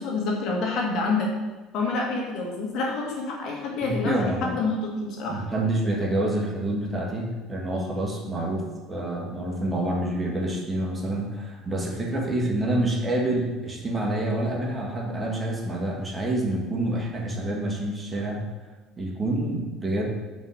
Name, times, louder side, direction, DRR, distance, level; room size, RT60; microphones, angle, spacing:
voice 1, 0.0-1.3 1.7-5.4, left 3 dB, 60° left, -1 dB, 1.9 m, -27 dB
voice 2, 3.8-4.6 5.3-18.4 19.0-20.1, right 1 dB, 25° right, -1 dB, 1.7 m, -27 dB
5.4 x 4.9 x 6.4 m, 1.2 s
supercardioid pair, 95°, 0 cm